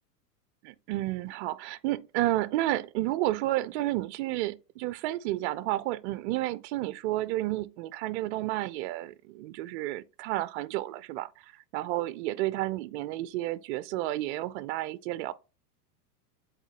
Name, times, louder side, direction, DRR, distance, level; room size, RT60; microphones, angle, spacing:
voice 1, 0.6-15.3, right 16 dB, 45° right, 0.5 m, -31 dB
7.9 x 4.1 x 2.9 m
hypercardioid pair, 125°, 50 cm